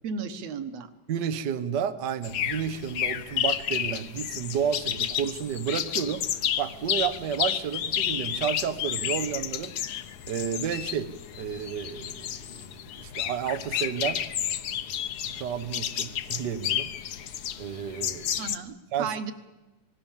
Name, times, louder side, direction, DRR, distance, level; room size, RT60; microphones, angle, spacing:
voice 1, 0.0-0.9 18.4-19.3, right 5 dB, 60° right, 9 dB, 2.2 m, -34 dB
voice 2, 1.1-9.7 10.3-11.1 11.4-12.6 13.0-14.2 15.3-16.9 17.6-18.5 18.9-19.1, right 8 dB, 80° right, 9 dB, 0.9 m, -31 dB
sound 1, 2.2-18.6, left 10 dB, 70° left, 1.3 m, -31 dB
27.0 x 20.0 x 7.3 m, 1.1 s
omnidirectional pair, 3.6 m